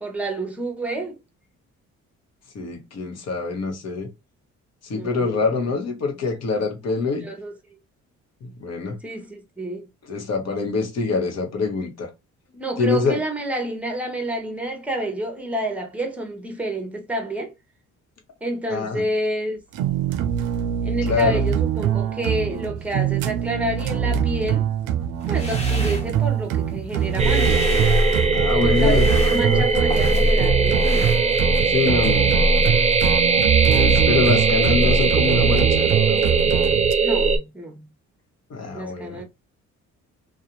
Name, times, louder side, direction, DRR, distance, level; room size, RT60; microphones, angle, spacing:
voice 1, 0.0-1.2 4.9-5.5 7.2-7.8 9.0-9.9 12.5-17.5 18.4-19.6 20.8-24.7 25.3-27.7 28.5-31.1 37.0-37.9 38.7-39.3, right 1 dB, 5° right, 0.8 m, -29 dB
voice 2, 2.5-4.1 4.8-7.3 8.4-9.0 10.1-12.1 12.8-13.2 18.7-19.0 21.0-21.4 28.3-29.7 31.7-32.4 33.5-36.2 38.5-39.2, left 4 dB, 55° left, 1.0 m, -25 dB
sound 1, 19.7-36.9, right 9 dB, 85° right, 0.5 m, -23 dB
sound 2, 25.2-26.6 26.9-28.3 28.7-30.4 30.7-31.7, left 1 dB, 20° left, 1.0 m, -35 dB
sound 3, 27.2-37.4, right 3 dB, 25° right, 0.4 m, -19 dB
2.4 x 2.3 x 2.9 m
cardioid pair, 90°, 30 cm